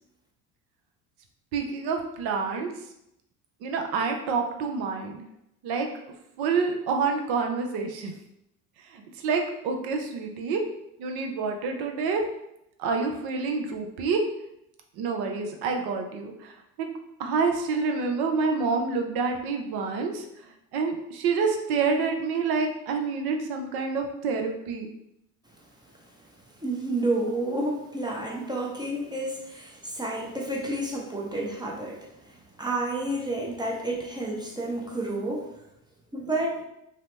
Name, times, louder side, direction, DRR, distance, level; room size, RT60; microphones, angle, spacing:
voice 1, 1.5-2.7 3.6-5.2 5.6-5.9 6.4-8.1 8.9-10.6 11.0-12.2 12.8-14.2 15.0-16.9 17.2-20.2 20.7-24.9, right 4 dB, 60° right, 3 dB, 0.7 m, -27 dB
voice 2, 26.6-35.6 36.1-36.6, right 2 dB, 10° right, -1 dB, 0.5 m, -30 dB
2.8 x 2.0 x 3.2 m, 0.80 s
hypercardioid pair, 75°, 44 cm